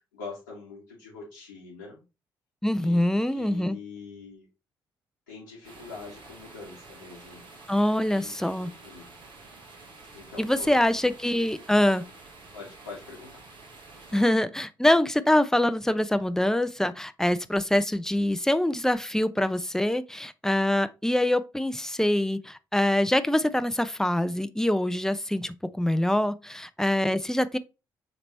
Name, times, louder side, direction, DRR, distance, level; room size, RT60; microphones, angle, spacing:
voice 1, 0.1-2.0 2.8-4.5 5.3-7.4 8.1-9.1 10.1-10.8 12.5-13.4 14.0-14.2, left 4 dB, 90° left, 1.5 m, -44 dB
voice 2, 2.6-3.8 7.7-8.7 10.4-12.0 14.1-27.6, left 1 dB, 5° left, 0.7 m, -24 dB
sound 1, 5.6-14.3, right 3 dB, 55° right, 1.8 m, -49 dB
6.7 x 3.3 x 4.3 m
hypercardioid pair, 45°, 10 cm